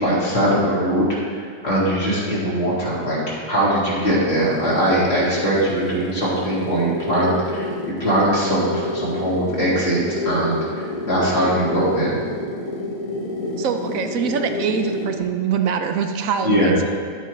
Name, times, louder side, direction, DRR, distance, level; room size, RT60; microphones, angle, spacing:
voice 1, 0.0-10.0 10.2-12.1 16.4-16.8, right 1 dB, 50° left, -7 dB, 2.4 m, -21 dB
sound 1, 3.5-15.2, left 2 dB, 80° left, 1.7 m, -29 dB
voice 2, 13.6-16.8, right 7 dB, 75° right, 6 dB, 1.0 m, -23 dB
11.5 x 8.3 x 3.2 m, 2.1 s
omnidirectional pair, 1.4 m